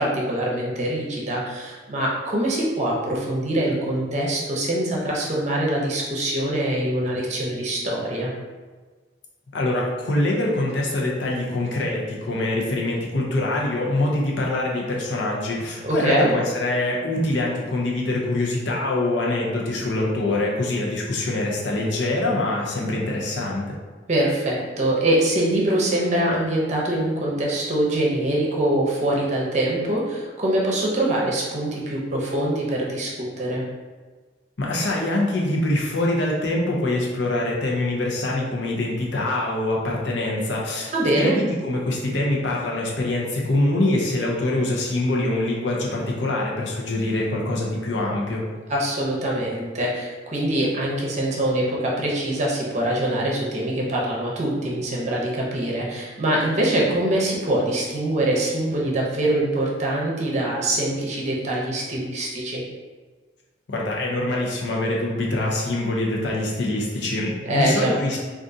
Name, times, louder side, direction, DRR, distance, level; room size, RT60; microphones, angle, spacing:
voice 1, 0.0-8.3 15.8-16.3 24.1-33.6 40.9-41.4 48.7-62.6 67.4-68.0, right 1 dB, 40° right, -3 dB, 0.7 m, -24 dB
voice 2, 9.5-23.6 34.6-48.4 63.7-68.2, left 2 dB, 75° left, -2 dB, 0.7 m, -24 dB
3.6 x 2.5 x 2.6 m, 1.4 s
head